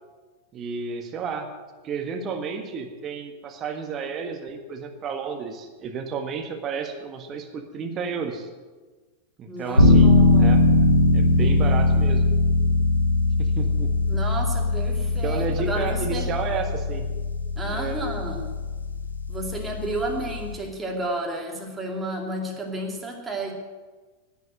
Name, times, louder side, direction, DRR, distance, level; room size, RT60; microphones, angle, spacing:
voice 1, 0.5-1.5 1.8-8.5 9.4-10.6 11.1-12.2 13.4-14.2 15.0-17.1 17.7-18.0, right 5 dB, 30° right, 4 dB, 1.6 m, -32 dB
voice 2, 9.5-10.5 14.1-16.3 17.6-18.5 19.3-23.5, right 1 dB, 10° right, 0 dB, 2.6 m, -31 dB
sound 1, 9.8-20.5, left 2 dB, 85° left, 2.1 m, -21 dB
11.0 x 9.3 x 7.9 m, 1.3 s
figure-of-eight pair, 90°, 0 cm